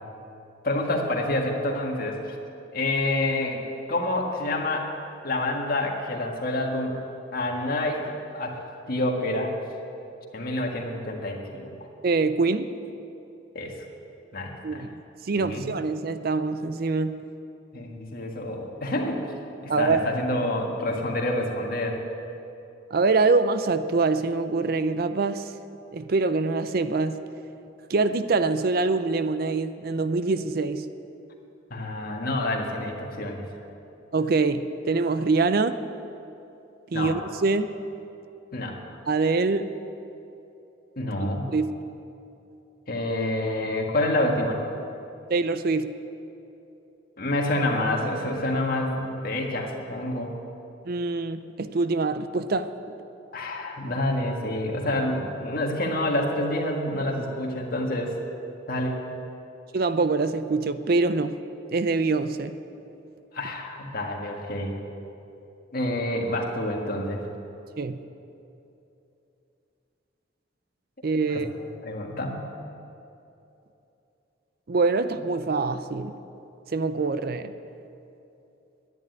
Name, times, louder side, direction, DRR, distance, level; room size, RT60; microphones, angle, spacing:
voice 1, 0.6-2.4 2.7-3.6 3.9-4.9 5.2-7.0 7.3-8.6 8.9-9.5 10.3-11.7 13.6-13.8 14.3-14.8 15.4-15.7 17.7-19.2 19.6-22.0 31.7-33.4 36.9-37.1 38.5-38.8 41.0-41.5 42.9-44.6 47.2-50.3 53.3-58.2 58.7-59.0 63.3-64.7 65.7-67.2 71.2-71.4 71.8-72.5, left 1 dB, 50° left, 1 dB, 1.8 m, -28 dB
voice 2, 12.0-12.7 14.6-15.0 15.3-17.1 19.7-20.0 22.9-25.5 25.9-27.2 27.9-30.9 34.1-35.8 36.9-37.7 39.1-39.7 41.5-41.7 45.3-45.9 50.9-52.7 59.7-61.4 61.7-62.5 67.8-68.0 71.0-71.5 74.7-76.1 76.7-77.5, right 3 dB, 50° right, 11 dB, 0.5 m, -24 dB
11.0 x 10.5 x 9.4 m, 2.9 s
head